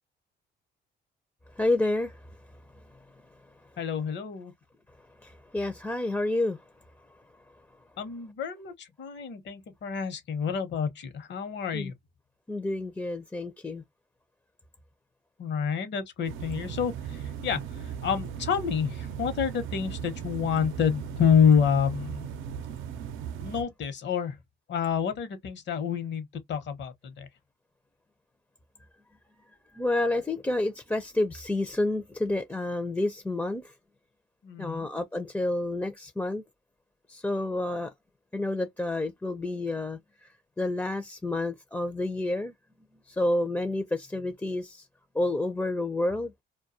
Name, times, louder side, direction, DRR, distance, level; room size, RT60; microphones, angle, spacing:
voice 1, 1.6-2.2 5.2-6.6 11.7-11.9 12.5-13.8 29.7-33.7 34.6-36.4 37.1-37.9 38.3-40.3 40.6-42.5 43.1-44.8 45.1-46.3, left 2 dB, 10° left, 0.4 m, -29 dB
voice 2, 3.8-4.5 8.0-11.9 15.4-22.3 23.4-24.4 24.7-27.3 34.4-34.9, left 7 dB, 65° left, 0.9 m, -28 dB
sound 1, 16.2-23.6, right 8 dB, 85° right, 0.6 m, -37 dB
2.3 x 2.2 x 2.6 m
cardioid pair, 90°, 20 cm